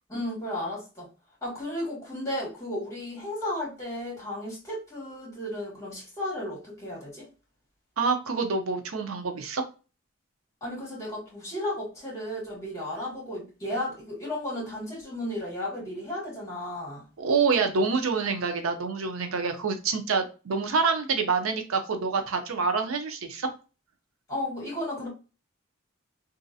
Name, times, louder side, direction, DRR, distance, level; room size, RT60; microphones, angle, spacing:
voice 1, 0.1-1.1 1.4-7.3 10.6-17.1 24.3-25.1, left 1 dB, 15° left, -4 dB, 1.8 m, -34 dB
voice 2, 8.0-9.6 17.2-23.5, right 4 dB, 90° right, 6 dB, 0.6 m, -27 dB
3.1 x 2.5 x 2.6 m, 0.32 s
head